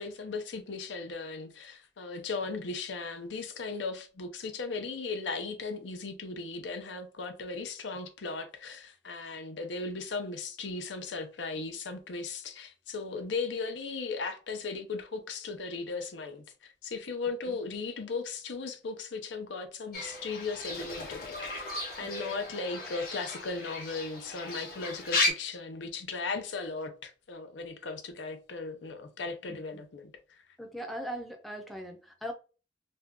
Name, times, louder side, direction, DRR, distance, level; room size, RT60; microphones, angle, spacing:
voice 1, 0.0-30.1, left 4 dB, 90° left, 0.6 m, -37 dB
Fowl / Bird, 19.9-25.3, left 2 dB, 55° left, 0.9 m, -34 dB
voice 2, 29.5-29.8 30.6-32.3, equal, ahead, 0.4 m, -40 dB
2.6 x 2.2 x 3.5 m
head